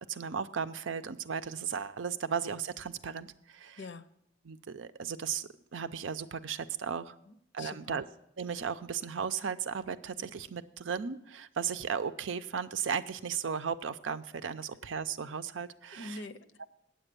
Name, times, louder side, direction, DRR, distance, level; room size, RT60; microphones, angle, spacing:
voice 1, 0.1-3.8 4.5-7.1 7.5-8.0 8.4-16.2 16.6-16.7, right 6 dB, 80° right, 12 dB, 0.5 m, -36 dB
voice 2, 3.8-4.1 7.2-8.0 15.9-16.7, left 3 dB, 65° left, 12 dB, 0.7 m, -45 dB
8.9 x 8.0 x 6.7 m, 0.75 s
head